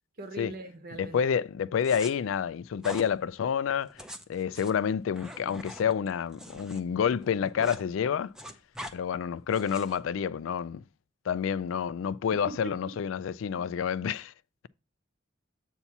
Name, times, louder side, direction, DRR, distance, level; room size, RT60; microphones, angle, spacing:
voice 1, 0.2-1.2 12.4-12.7, right 2 dB, 50° right, 1.1 m, -41 dB
voice 2, 1.0-4.0 4.3-8.3 8.9-10.8 11.3-14.3, left 7 dB, 75° left, 0.3 m, -29 dB
sound 1, 1.8-2.1 2.8-3.1 3.8-6.8 7.1-7.8 8.1-8.9 9.5-10.0, equal, 5° right, 0.6 m, -43 dB
8.1 x 2.8 x 5.8 m
head